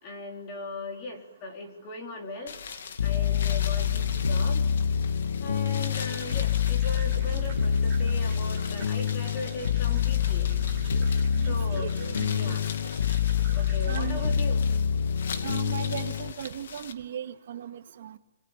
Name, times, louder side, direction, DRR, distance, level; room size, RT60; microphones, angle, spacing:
voice 1, 0.0-2.6 3.0-4.7 5.4-10.5 11.5-11.9 12.3-12.7 13.5-14.6, left 2 dB, 20° left, 1 dB, 4.2 m, -39 dB
sound 1, 2.5-16.9, left 6 dB, 55° left, 2.4 m, -42 dB
sound 2, 3.0-16.3, left 7 dB, 80° left, 1.5 m, -26 dB
sound 3, 5.9-14.3, right 5 dB, 10° right, 6.5 m, -49 dB
voice 2, 11.3-12.6 13.9-14.3 15.4-18.2, right 9 dB, 40° right, 6 dB, 2.2 m, -37 dB
27.0 x 26.5 x 7.5 m, 0.84 s
hypercardioid pair, 180°, 0 cm